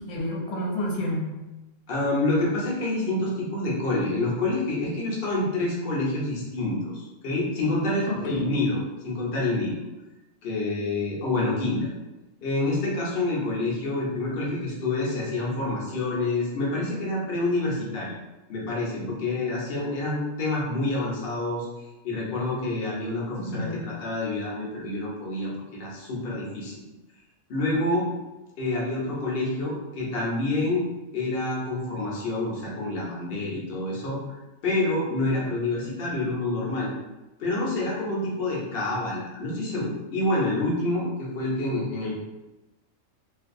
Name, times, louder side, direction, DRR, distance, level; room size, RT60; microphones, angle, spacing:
voice 1, 0.1-1.3 8.1-8.5 23.3-23.8, left 1 dB, 85° left, -1 dB, 1.0 m, -30 dB
voice 2, 1.9-9.8 10.4-11.9 12.4-18.1 18.5-21.7 22.0-26.7 27.5-28.1 28.6-30.9 31.1-36.9 37.4-42.2, left 2 dB, 50° left, -4 dB, 0.8 m, -27 dB
2.6 x 2.3 x 2.5 m, 1.1 s
omnidirectional pair, 1.4 m